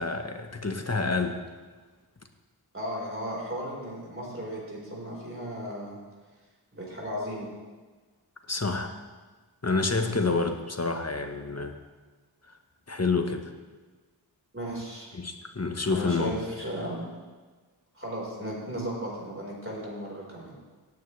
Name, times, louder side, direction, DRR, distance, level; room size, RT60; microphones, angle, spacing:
voice 1, 0.0-1.4 8.5-8.9 9.6-11.8 12.5-12.6 12.9-13.5 15.1-16.3, left 3 dB, 35° left, 6 dB, 1.2 m, -28 dB
voice 2, 2.7-6.0 6.7-7.5 10.0-10.1 14.5-15.1 15.9-17.0 17.9-20.5, equal, 30° right, -4 dB, 4.5 m, -35 dB
17.5 x 9.5 x 3.3 m, 1.4 s
wide cardioid pair, 45°, 44 cm